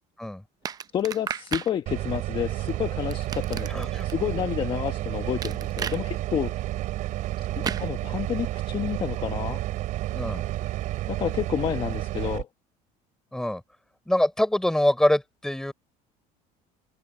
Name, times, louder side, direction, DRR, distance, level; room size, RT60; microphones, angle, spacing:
sound 1, 0.7-1.7 3.1-4.1 5.4-6.0 7.6-7.9, right 7 dB, 25° right, 0.6 m, -33 dB
voice 1, 0.9-3.7 4.0-6.5 7.6-9.6 11.1-12.5, left 9 dB, 35° left, 1.2 m, -29 dB
sound 2, 1.9-12.4, right 15 dB, 55° right, 5.0 m, -31 dB
voice 2, 3.7-4.1 7.6-7.8 10.1-10.5 13.3-13.6 14.1-15.7, left 1 dB, 5° left, 3.6 m, -24 dB
cardioid pair, 150°, 15 cm